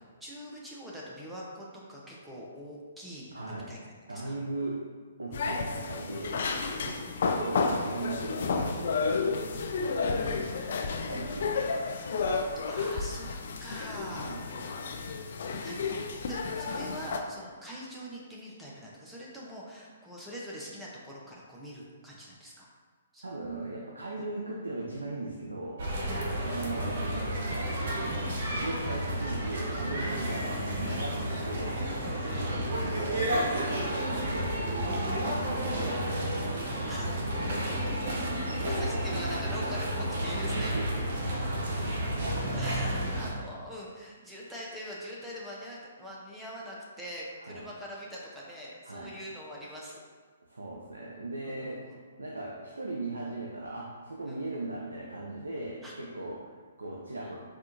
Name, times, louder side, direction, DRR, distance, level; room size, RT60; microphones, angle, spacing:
voice 1, 0.0-3.8 4.1-4.4 5.3-5.4 6.7-6.9 10.1-10.5 12.7-14.6 15.6-22.7 23.1-23.2 26.1-26.3 30.1-31.3 32.0-33.2 33.9-34.0 35.0-35.2 36.9-37.1 38.8-40.7 42.5-50.0 51.5-52.0 54.3-54.4 55.8-55.9, equal, 5° right, -5 dB, 0.6 m, -44 dB
voice 2, 3.3-3.7 4.1-4.9 5.2-6.5 6.8-7.0 7.3-9.6 11.1-12.1 14.0-14.5 23.2-25.8 26.4-27.8 28.5-31.9 32.2-37.1 38.6-38.9 39.6-39.7 40.2-41.1 41.8-42.0 47.4-47.7 48.8-49.2 50.4-51.9 52.2-57.4, right 2 dB, 90° right, -2 dB, 0.4 m, -39 dB
sound 1, 5.3-17.2, left 4 dB, 60° left, 0.3 m, -31 dB
sound 2, 25.8-43.3, right 1 dB, 55° right, 0.7 m, -31 dB
4.3 x 2.4 x 2.5 m, 1.5 s
hypercardioid pair, 130°, 0 cm